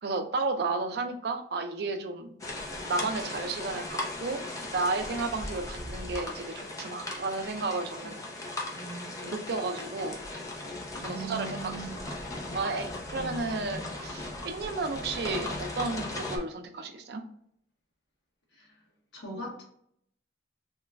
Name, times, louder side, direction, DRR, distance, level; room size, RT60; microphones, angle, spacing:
voice 1, 0.0-2.4 2.8-4.5 4.7-8.3 9.2-10.2 11.0-11.8 12.5-17.2, right 3 dB, 65° right, 5 dB, 0.5 m, -33 dB
sound 1, 2.4-16.4, left 2 dB, 20° left, 0.5 m, -38 dB
voice 2, 8.7-9.1 11.0-12.0 13.2-13.8 18.5-18.7 19.1-19.6, right 3 dB, 80° left, -2 dB, 1.2 m, -40 dB
3.0 x 2.3 x 3.3 m, 0.67 s
head